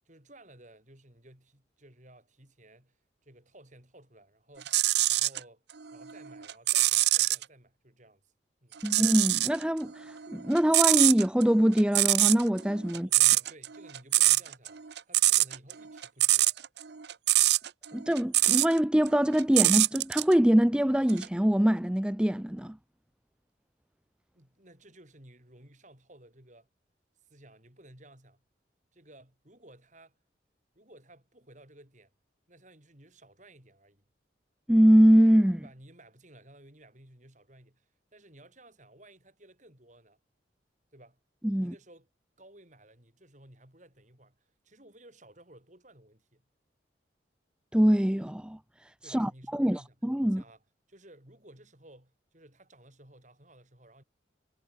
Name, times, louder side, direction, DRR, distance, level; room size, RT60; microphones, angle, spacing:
voice 1, 0.0-4.8 5.1-5.6 5.9-8.3 8.6-8.8 12.9-14.8 15.1-16.5 24.3-26.7 27.3-28.4 28.9-30.2 30.7-32.1 32.5-34.1 35.6-40.2 40.9-41.2 41.6-42.1 42.4-46.4 49.0-50.0 50.2-50.6 50.9-54.0, right 1 dB, 40° right, 6.7 m, -56 dB
sound 1, 4.6-5.4 5.9-7.4 8.8-9.6 9.9-18.8 19.1-20.3 21.1-21.3, right 16 dB, 60° right, 0.7 m, -24 dB
voice 2, 8.8-13.1 17.9-22.8 34.7-35.6 41.4-41.7 47.7-50.4, equal, 5° right, 0.5 m, -24 dB
head